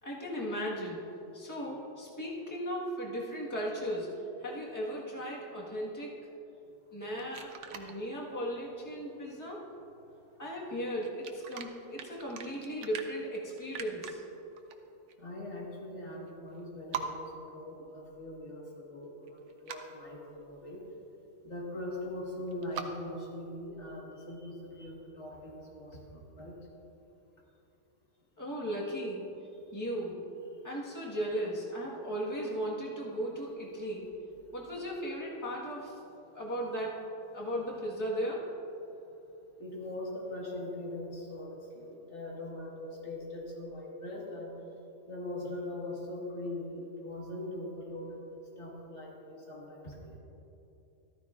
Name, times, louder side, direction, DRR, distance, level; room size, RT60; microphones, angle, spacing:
voice 1, 0.0-1.0 1.3-4.1 4.4-6.1 6.9-9.6 10.4-14.2 28.4-29.3 29.7-30.2 30.6-34.1 34.5-36.0 36.3-37.0 37.3-38.5, equal, 15° left, -4 dB, 1.5 m, -36 dB
sound 1, 7.0-7.9 11.0-14.1 14.6-14.8 15.1-15.2 16.3-16.4 16.6-16.7 16.9-17.0 19.3-19.8 22.5-22.9, right 8 dB, 80° right, 1.1 m, -42 dB
voice 2, 15.2-20.8 21.4-26.6 30.5-30.6 38.9-39.0 39.6-44.5 45.1-50.2, left 1 dB, 70° left, -3 dB, 2.0 m, -41 dB
13.5 x 13.5 x 2.5 m, 2.9 s
omnidirectional pair, 1.3 m